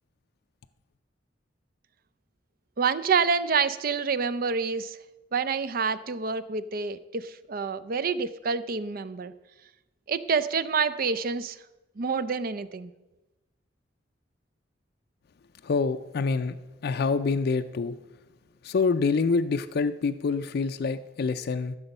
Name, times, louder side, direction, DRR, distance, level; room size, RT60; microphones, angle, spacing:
voice 1, 2.8-5.0 5.3-9.3 10.1-11.6 12.0-12.9, right 5 dB, 50° right, 15 dB, 0.5 m, -27 dB
voice 2, 15.6-16.6 16.8-18.0 18.6-21.8, left 4 dB, 55° left, 9 dB, 0.4 m, -26 dB
14.0 x 7.0 x 5.4 m, 1.1 s
head